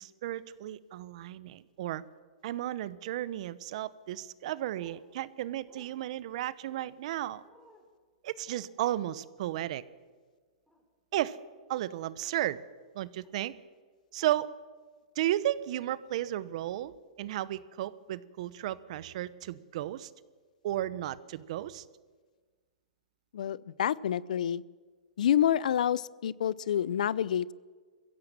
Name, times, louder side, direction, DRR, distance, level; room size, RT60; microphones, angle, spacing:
voice 1, 0.0-2.0 2.4-7.4 8.2-9.8 11.1-11.4 11.7-12.6 12.9-13.5 14.1-14.5 15.2-16.9 17.2-20.1 20.6-21.9, right 13 dB, 55° right, 17 dB, 0.9 m, -34 dB
sound 1, 4.7-5.0 5.7-5.9 6.6-6.9 7.4-7.9 8.4-8.7 10.7-10.8 11.7-12.0 13.2-13.4 14.2-14.3, left 2 dB, 5° left, 4.1 m, -60 dB
voice 2, 23.3-24.6 25.2-27.5, left 10 dB, 75° left, 22 dB, 0.6 m, -28 dB
22.5 x 15.5 x 7.5 m, 1.5 s
hypercardioid pair, 135°, 4 cm